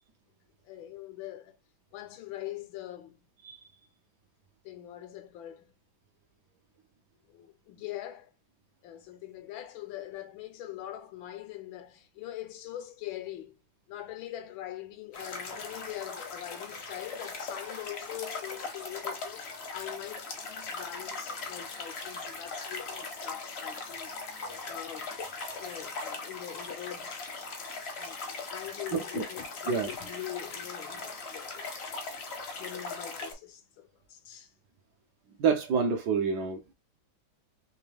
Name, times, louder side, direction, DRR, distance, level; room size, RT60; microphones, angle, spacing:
voice 1, 0.6-1.6 1.9-3.3 4.6-5.8 7.3-8.3 8.8-13.6 13.9-24.2 24.6-25.2 25.5-27.3 28.0-28.2 28.5-31.7 32.6-34.5, left 13 dB, 80° left, 1.4 m, -42 dB
sound 1, 15.1-33.3, left 3 dB, 50° left, 0.7 m, -39 dB
voice 2, 28.9-29.3 29.7-29.9 35.4-36.7, right 5 dB, 70° right, 1.0 m, -28 dB
3.5 x 3.0 x 3.4 m
omnidirectional pair, 2.2 m